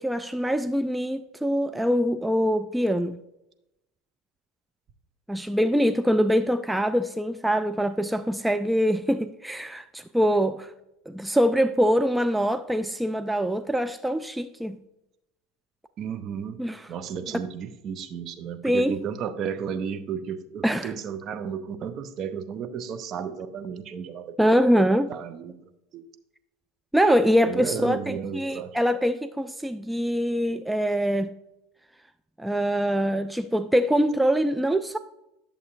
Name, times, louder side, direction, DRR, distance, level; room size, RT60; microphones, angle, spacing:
voice 1, 0.0-3.2 5.3-10.7 11.1-14.8 16.6-16.9 17.3-17.4 18.6-19.0 20.6-20.9 24.4-25.1 26.9-31.3 32.4-35.0, equal, 5° right, 0.3 m, -24 dB
voice 2, 16.0-16.6 16.9-24.3 24.8-25.5 25.9-26.0 27.4-28.7, right 7 dB, 40° right, 0.7 m, -33 dB
11.0 x 6.8 x 2.5 m
figure-of-eight pair, 75°, 0 cm